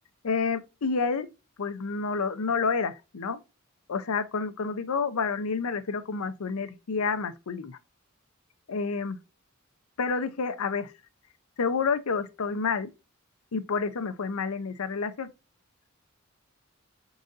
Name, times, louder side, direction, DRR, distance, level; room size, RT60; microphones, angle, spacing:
voice 1, 0.2-1.3 1.6-3.4 3.9-7.8 8.7-9.2 10.0-10.9 11.6-12.9 13.5-15.3, left 5 dB, 85° left, 0.6 m, -29 dB
4.8 x 4.0 x 2.5 m
head